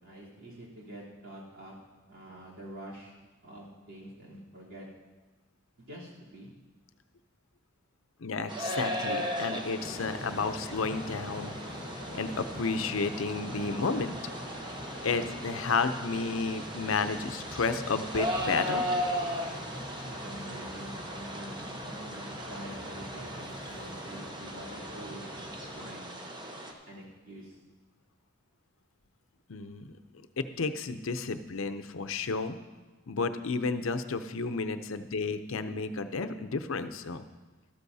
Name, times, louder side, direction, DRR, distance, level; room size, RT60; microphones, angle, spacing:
voice 1, 0.0-1.7 2.1-3.2 3.4-4.9 5.8-6.5 20.0-26.1 26.9-27.6, right 1 dB, 75° right, -6 dB, 3.3 m, -46 dB
voice 2, 8.2-11.5 12.1-14.2 15.0-18.8 29.5-29.9 30.4-32.6 33.1-37.2, left 4 dB, 80° left, 10 dB, 0.6 m, -32 dB
sound 1, 8.5-26.7, equal, 25° right, 0.9 m, -37 dB
sound 2, 9.8-25.9, left 1 dB, 35° left, 1.1 m, -45 dB
13.0 x 13.0 x 2.7 m, 1.2 s
head